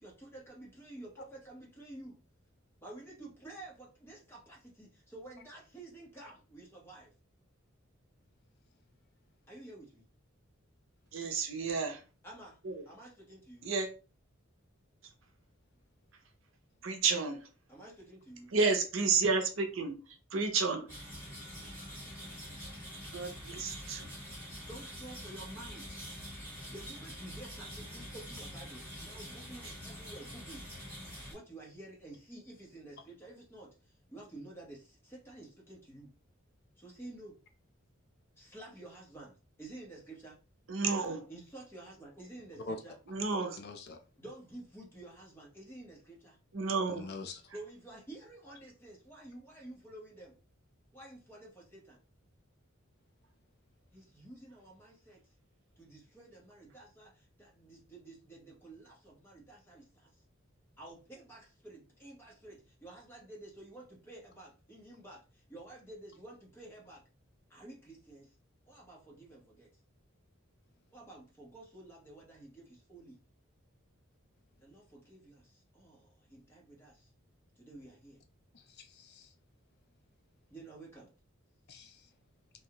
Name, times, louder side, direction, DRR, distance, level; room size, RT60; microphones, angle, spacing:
voice 1, 0.0-2.2 2.8-7.1 9.5-10.0 12.2-12.6 12.9-13.7 17.7-18.5 21.2-21.6 22.0-22.4 23.9-24.1 24.7-25.9 26.7-30.6 31.3-36.1 36.8-37.4 38.4-40.4 41.3-43.0 44.2-46.4 47.5-50.4 50.9-52.0 53.9-55.2 55.8-60.2 60.8-67.0 67.5-68.3 68.7-69.7 70.9-73.2 74.6-77.1 77.6-78.2 80.5-81.1, right 2 dB, 10° left, 1.0 m, -51 dB
voice 2, 11.1-12.0 12.6-12.9 13.6-13.9 16.8-17.5 18.5-20.9 21.6-21.7 23.1-24.1 40.7-41.3 43.1-43.6 46.5-47.1, right 4 dB, 70° right, 0.6 m, -31 dB
sound 1, 20.9-31.3, equal, 10° right, 1.5 m, -45 dB
voice 3, 43.6-44.0 46.9-47.4 78.5-79.3 81.7-82.0, left 3 dB, 50° left, 0.4 m, -44 dB
2.6 x 2.3 x 2.9 m
head